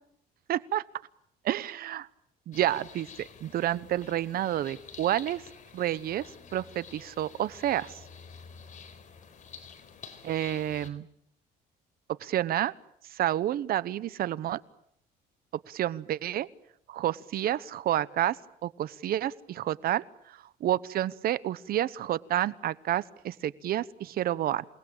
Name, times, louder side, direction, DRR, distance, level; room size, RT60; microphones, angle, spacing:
voice 1, 0.5-0.8 1.4-2.1 2.5-5.4 5.7-6.2 6.5-7.9 10.2-11.1 12.2-12.7 13.1-14.6 15.7-16.5 16.9-18.4 18.6-24.6, right 12 dB, 65° right, 18 dB, 1.0 m, -29 dB
sound 1, 2.5-10.9, left 6 dB, 50° left, 4.1 m, -49 dB
28.5 x 19.5 x 8.9 m, 0.73 s
cardioid pair, 110°, 17 cm